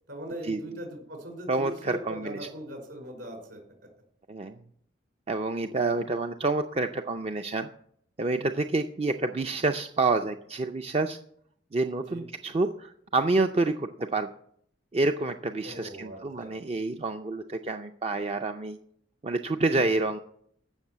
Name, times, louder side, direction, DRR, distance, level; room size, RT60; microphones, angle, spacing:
voice 1, 0.1-3.6 12.0-12.2 15.6-16.6 19.7-19.9, equal, 65° right, 2 dB, 5.1 m, -40 dB
voice 2, 1.5-2.5 4.3-4.6 5.3-7.7 8.2-11.2 11.7-14.3 14.9-18.8 19.2-20.2, right 3 dB, 30° right, 7 dB, 0.5 m, -28 dB
14.5 x 6.2 x 7.9 m, 0.69 s
head